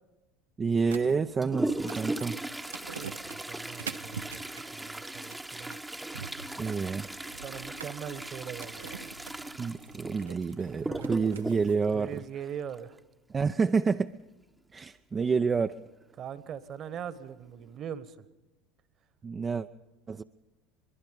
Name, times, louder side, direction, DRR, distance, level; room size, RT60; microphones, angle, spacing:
voice 1, 0.6-2.4 6.6-7.1 9.6-12.2 13.3-14.1 14.7-15.8 19.2-19.7 20.1-20.2, right 5 dB, 25° right, 7 dB, 0.6 m, -28 dB
sound 1, 0.8-11.8, right 6 dB, 80° right, 0.8 m, -46 dB
Toilet flush, 1.0-13.0 14.9-15.0 15.3-15.4 16.2-16.3 16.9-17.2 17.6-17.8, right 1 dB, 5° right, 1.0 m, -38 dB
voice 2, 2.9-5.8 7.4-8.9 10.8-11.3 11.9-13.0 16.2-18.2, right 8 dB, 40° right, 14 dB, 1.5 m, -41 dB
23.5 x 23.0 x 5.3 m, 1.0 s
figure-of-eight pair, 75°, 0 cm